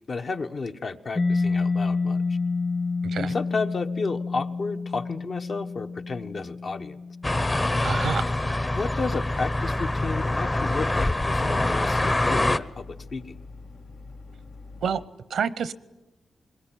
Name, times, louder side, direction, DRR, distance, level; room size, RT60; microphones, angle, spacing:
voice 1, 0.1-2.2 3.2-7.0 8.7-13.4, left 4 dB, 60° left, 1.1 m, -32 dB
Mallet percussion, 1.2-8.7, left 4 dB, 40° left, 2.1 m, -29 dB
voice 2, 3.0-3.3 7.8-8.3 14.8-15.0 15.3-15.7, right 7 dB, 85° right, 0.8 m, -28 dB
sound 1, 7.2-12.6, left 2 dB, 25° left, 0.8 m, -25 dB
sound 2, 9.6-15.1, left 3 dB, 90° left, 2.0 m, -45 dB
22.0 x 20.5 x 9.1 m
cardioid pair, 75°, 0 cm